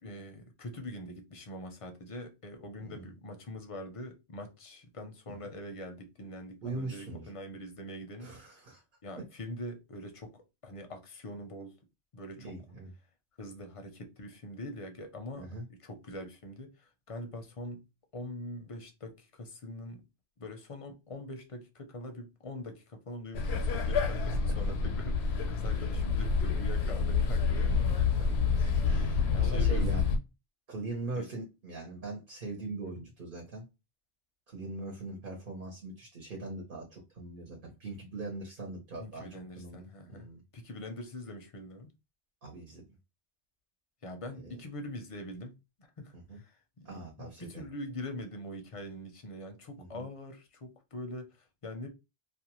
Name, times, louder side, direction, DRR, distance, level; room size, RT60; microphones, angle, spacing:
voice 1, 0.0-8.3 9.0-11.8 12.1-12.6 13.4-17.8 18.1-20.0 20.4-27.9 28.9-29.0 29.3-30.0 31.2-31.3 32.8-33.0 39.0-41.9 44.0-45.5 46.0-51.3 51.6-51.9, left 1 dB, 40° left, 0.6 m, -43 dB
voice 2, 6.6-7.3 8.2-8.8 12.4-12.9 15.4-15.6 23.7-23.9 25.9-26.0 28.6-30.0 30.7-33.6 34.5-39.3 39.5-40.4 42.4-42.8 44.4-44.6 46.3-46.4 46.8-47.7 49.8-50.0, right 2 dB, 55° right, 1.0 m, -41 dB
sound 1, 23.3-30.2, left 5 dB, 85° left, 0.9 m, -28 dB
2.4 x 2.3 x 2.9 m
omnidirectional pair, 1.1 m